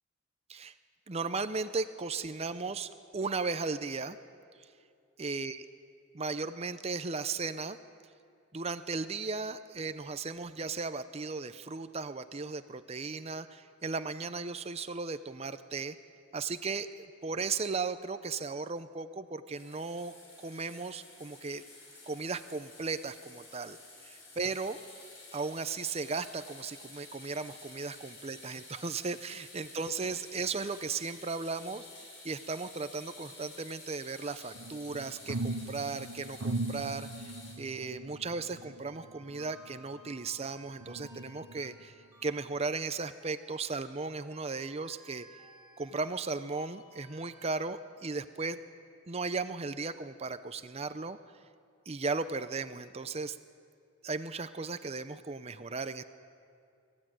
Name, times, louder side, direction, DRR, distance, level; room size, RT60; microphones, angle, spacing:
voice 1, 1.1-4.2 4.6-4.7 5.2-5.7 6.1-7.8 8.5-15.9 16.3-16.9 17.2-20.1 20.4-21.6 22.1-23.8 24.0-24.8 25.3-31.9 32.2-37.1 37.6-41.9 42.2-45.3 45.8-48.6 49.1-51.2 51.9-53.4 54.0-56.0, right 4 dB, 30° right, 11 dB, 0.6 m, -36 dB
sound 1, 19.5-37.6, left 3 dB, 60° left, 5.9 m, -51 dB
sound 2, 34.5-40.3 40.8-41.9 42.4-42.6, right 2 dB, 75° right, 0.9 m, -40 dB
sound 3, 38.8-47.6, equal, 15° right, 7.0 m, -59 dB
25.0 x 15.0 x 9.1 m, 2.5 s
head